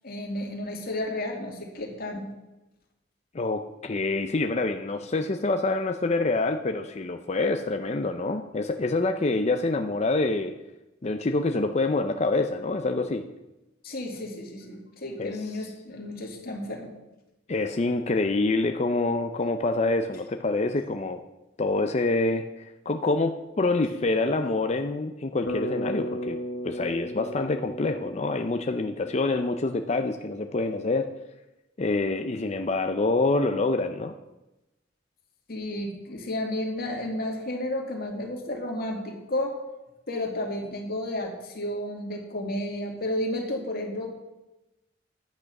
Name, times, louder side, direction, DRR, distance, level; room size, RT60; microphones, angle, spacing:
voice 1, 0.0-2.3 13.8-16.9 35.5-39.5 40.1-44.2, left 1 dB, 50° left, 1 dB, 2.4 m, -32 dB
voice 2, 3.3-10.5 11.0-13.2 15.2-15.4 17.5-21.2 21.6-26.4 26.6-31.1 31.8-34.1, left 2 dB, 35° left, 6 dB, 0.5 m, -26 dB
Bass guitar, 25.5-29.6, equal, 75° left, 1.2 m, -35 dB
10.5 x 8.7 x 6.0 m, 0.98 s
head